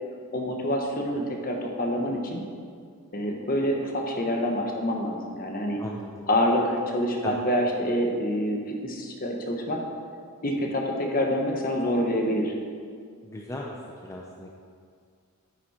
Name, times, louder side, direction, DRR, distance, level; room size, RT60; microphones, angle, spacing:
voice 1, 0.3-2.4 3.1-5.8 6.3-9.8 10.4-12.5, equal, 40° left, 1 dB, 1.3 m, -27 dB
voice 2, 5.8-6.1 7.2-7.4 13.2-13.8 14.0-14.5, left 1 dB, 15° left, -1 dB, 0.6 m, -37 dB
9.6 x 9.0 x 4.4 m, 2.1 s
head